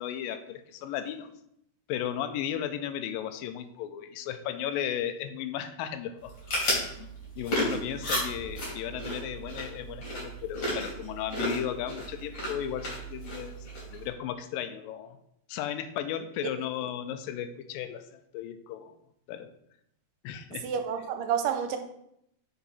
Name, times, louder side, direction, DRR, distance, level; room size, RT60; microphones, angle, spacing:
voice 1, 0.0-1.3 1.9-6.3 7.0-7.1 7.4-13.6 13.8-15.2 15.5-18.9 19.3-19.5 20.2-20.7, left 10 dB, 85° left, 9 dB, 2.3 m, -35 dB
sound 1, 6.2-14.1, equal, 45° left, 3.9 m, -34 dB
voice 2, 20.6-21.8, right 8 dB, 80° right, 7 dB, 2.2 m, -29 dB
7.1 x 5.6 x 4.1 m, 0.76 s
omnidirectional pair, 4.0 m